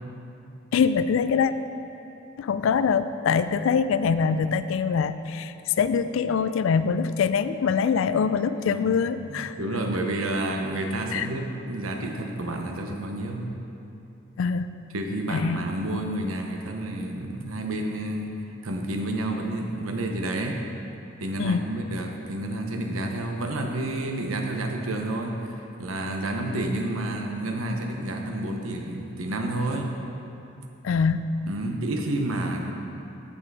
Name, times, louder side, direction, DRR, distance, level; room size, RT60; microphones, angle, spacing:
voice 1, 0.7-1.5 2.4-9.6 11.1-11.3 14.4-14.7 15.3-15.6 21.4-21.6 30.8-31.3, left 6 dB, 65° left, 12 dB, 0.3 m, -24 dB
voice 2, 8.7-9.0 9.3-13.5 14.9-20.6 21.2-30.0 31.4-32.7, right 1 dB, 85° right, 3 dB, 0.9 m, -30 dB
8.3 x 7.1 x 4.8 m, 2.8 s
head